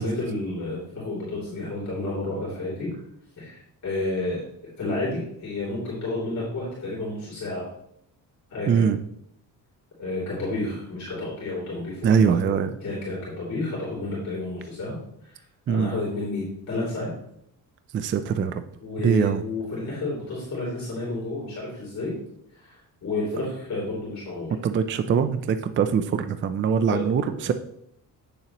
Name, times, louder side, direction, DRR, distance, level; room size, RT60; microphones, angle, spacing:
voice 1, 0.0-3.0 3.4-4.4 4.8-7.7 8.5-8.9 10.0-15.0 15.2-15.4 15.7-17.1 18.8-22.1 22.5-24.6 26.8-27.4, left 2 dB, 50° left, -6 dB, 2.9 m, -31 dB
voice 2, 8.7-9.0 12.0-12.7 15.7-15.9 17.9-18.6 19.0-19.4 24.6-27.5, right 7 dB, 35° right, 10 dB, 0.4 m, -22 dB
8.8 x 6.9 x 3.0 m, 0.73 s
cardioid pair, 160°, 37 cm